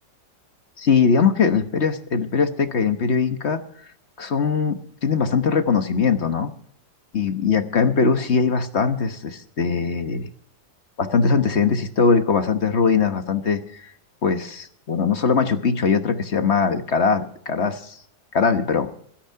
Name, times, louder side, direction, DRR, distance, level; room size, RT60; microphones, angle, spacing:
voice 1, 0.8-3.6 4.2-6.5 7.1-10.3 11.0-13.9 14.2-18.0 18.3-18.9, left 5 dB, 40° left, 8 dB, 1.3 m, -21 dB
16.5 x 13.5 x 4.6 m, 0.64 s
omnidirectional pair, 2.0 m